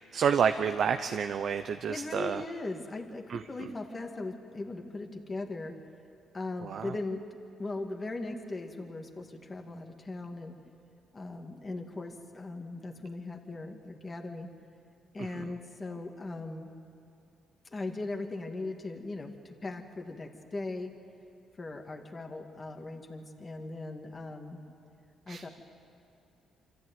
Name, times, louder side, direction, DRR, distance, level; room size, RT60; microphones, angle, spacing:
voice 1, 0.0-2.4 3.3-3.4 6.6-6.9 15.2-15.3 25.3-25.4, right 7 dB, 60° right, 8 dB, 0.7 m, -29 dB
voice 2, 1.9-5.8 6.3-7.3 7.6-10.6 11.1-14.5 15.1-16.7 17.7-21.0 21.6-24.6 25.3-25.5, left 2 dB, 30° left, 3 dB, 1.9 m, -39 dB
25.5 x 13.5 x 9.4 m, 2.6 s
cardioid pair, 90°, 0 cm